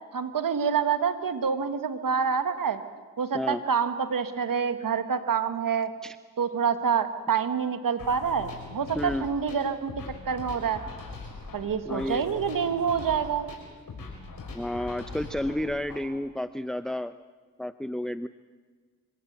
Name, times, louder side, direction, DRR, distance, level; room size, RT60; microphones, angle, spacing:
voice 1, 0.1-2.8 3.2-5.9 6.4-9.9 10.3-10.8 11.5-13.4, right 6 dB, 80° right, 10 dB, 1.4 m, -27 dB
sound 1, 8.0-16.0, left 3 dB, 85° left, 5.3 m, -42 dB
voice 2, 8.9-9.3 11.9-12.3 14.5-17.1 17.6-18.3, left 1 dB, ahead, 12 dB, 0.7 m, -31 dB
25.0 x 17.5 x 7.9 m, 1.5 s
cardioid pair, 40°, 33 cm